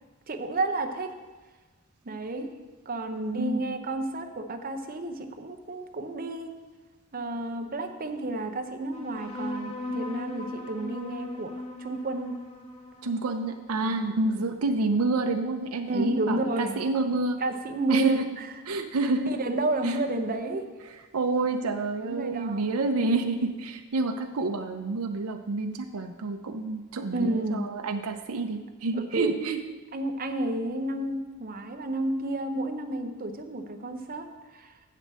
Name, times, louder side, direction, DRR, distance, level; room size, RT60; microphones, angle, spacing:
voice 1, 0.3-1.1 2.1-2.5 2.9-6.6 7.1-12.4 13.7-14.0 15.9-16.8 17.4-18.5 19.3-20.6 22.0-22.6 27.1-27.7 28.9-29.4 29.9-34.7, right 2 dB, 40° right, 6 dB, 0.7 m, -31 dB
voice 2, 3.3-3.8 13.0-17.4 17.9-18.2 18.7-19.4 19.8-20.0 21.1-29.6, right 3 dB, 80° right, 5 dB, 0.6 m, -28 dB
sound 1, 8.9-15.8, left 2 dB, 30° left, 1.2 m, -39 dB
7.5 x 5.1 x 7.4 m, 1.3 s
head